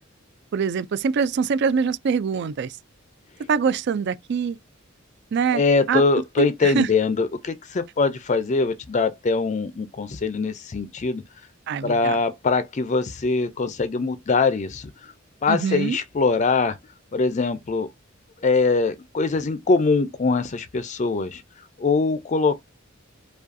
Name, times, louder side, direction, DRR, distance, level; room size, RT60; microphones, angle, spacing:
voice 1, 0.5-2.8 3.5-4.6 5.3-5.6 5.9-6.0 6.4-6.9 11.7-12.2 15.5-16.0, right 6 dB, 55° right, 0.3 m, -24 dB
voice 2, 5.5-11.2 11.8-14.9 15.4-16.8 17.1-17.9 18.4-21.4 21.8-22.7, left 4 dB, 35° left, 0.4 m, -22 dB
5.0 x 2.3 x 2.6 m
head